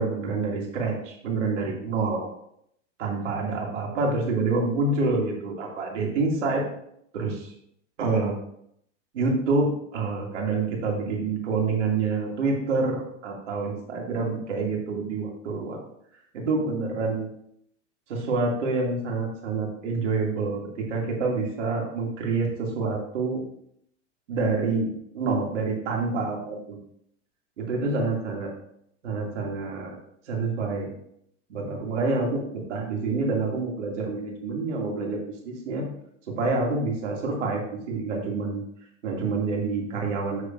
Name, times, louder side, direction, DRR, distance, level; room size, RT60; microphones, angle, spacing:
voice 1, 0.0-2.3 3.0-6.6 7.1-7.5 8.0-8.3 9.1-15.8 16.3-17.3 18.1-23.4 24.3-24.9 25.1-26.8 27.6-28.5 29.0-30.0 30.3-30.9 31.5-35.9 36.3-38.6 39.0-40.4, right 3 dB, 80° right, -1 dB, 2.6 m, -27 dB
9.3 x 7.9 x 2.6 m, 0.71 s
hypercardioid pair, 100°, 36 cm